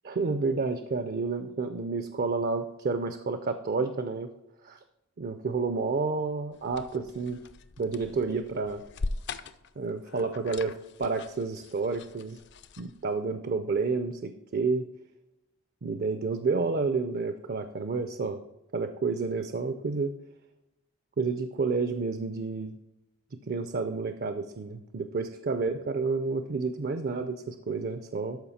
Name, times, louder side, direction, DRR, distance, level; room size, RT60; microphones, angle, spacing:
voice 1, 0.0-4.3 4.6-4.8 5.2-7.4 7.8-8.8 9.8-12.4 12.8-14.9 15.8-18.4 18.7-20.1 21.2-22.8 23.5-28.4, right 4 dB, 45° right, 9 dB, 0.5 m, -30 dB
sound 1, 6.5-13.2, left 3 dB, 55° left, 0.5 m, -41 dB
13.0 x 4.9 x 4.2 m, 0.91 s
head